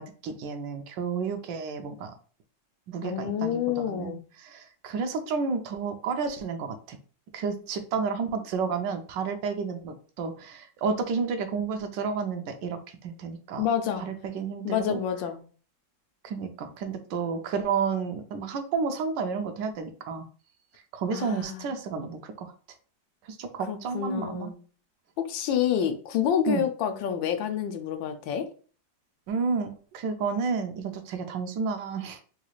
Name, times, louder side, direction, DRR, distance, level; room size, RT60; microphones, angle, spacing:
voice 1, 0.0-2.1 2.9-7.0 7.3-13.7 14.0-15.0 16.2-20.2 20.9-22.5 23.2-24.5 26.5-26.6 29.3-32.2, right 5 dB, 80° right, 7 dB, 1.2 m, -31 dB
voice 2, 3.0-4.2 13.6-14.0 14.6-15.4 21.1-21.7 23.7-24.6 25.2-28.5, left 9 dB, 85° left, 7 dB, 1.3 m, -28 dB
3.9 x 2.3 x 3.0 m, 0.40 s
omnidirectional pair, 2.0 m